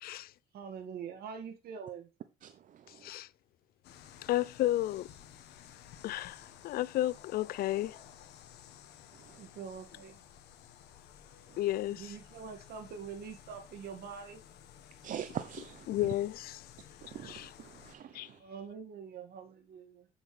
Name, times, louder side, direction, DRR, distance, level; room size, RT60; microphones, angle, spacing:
voice 1, 0.5-2.1 9.4-10.2 12.0-14.4 18.4-20.1, right 6 dB, 65° right, 2.0 m, -44 dB
voice 2, 2.4-3.1 9.2-9.4 15.0-15.9 17.0-18.4, right 10 dB, 50° right, 0.7 m, -43 dB
sound 1, 3.8-17.9, left 9 dB, 80° left, 1.4 m, -54 dB
voice 3, 4.3-5.1 6.0-8.0 11.6-12.2 15.9-16.6 17.2-17.5 18.1-18.3, left 14 dB, 65° left, 0.4 m, -32 dB
8.3 x 8.0 x 3.3 m
cardioid pair, 110°, 17 cm